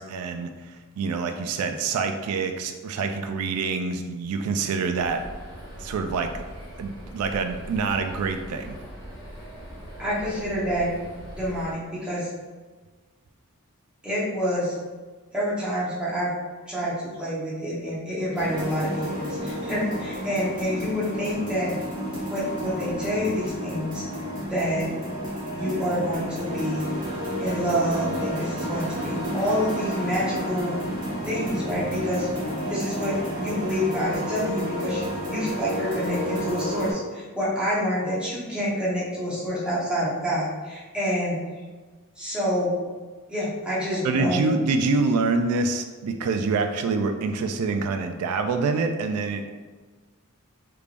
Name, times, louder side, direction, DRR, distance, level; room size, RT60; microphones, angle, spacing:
voice 1, 0.0-5.2 5.8-6.3 6.8-8.8 44.0-49.5, right 4 dB, 80° right, 11 dB, 0.3 m, -26 dB
sound 1, 5.0-11.7, equal, 15° left, 1.1 m, -41 dB
voice 2, 10.0-10.9 11.3-12.3 14.0-14.8 15.3-16.3 16.7-21.7 22.3-24.0 24.5-24.9 25.6-26.9 27.4-30.8 31.2-32.3 32.7-41.4 42.2-42.7 43.3-44.5, equal, 5° right, -9 dB, 1.0 m, -27 dB
sound 2, 18.4-36.9, equal, 35° right, 1.1 m, -31 dB
sound 3, 23.9-37.0, left 1 dB, 85° left, 0.7 m, -43 dB
3.4 x 3.3 x 2.4 m, 1.3 s
head